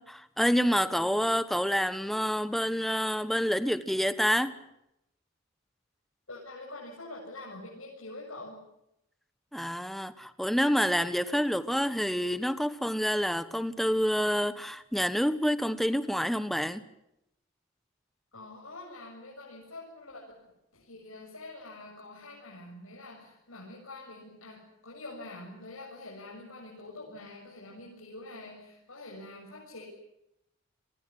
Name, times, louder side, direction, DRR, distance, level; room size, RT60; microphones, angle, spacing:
voice 1, 0.0-4.6 9.5-16.8, equal, ahead, 1.2 m, -28 dB
voice 2, 0.7-1.2 6.3-8.6 18.3-20.5 20.7-29.8, left 2 dB, 90° left, 7.6 m, -45 dB
29.0 x 21.5 x 7.6 m
head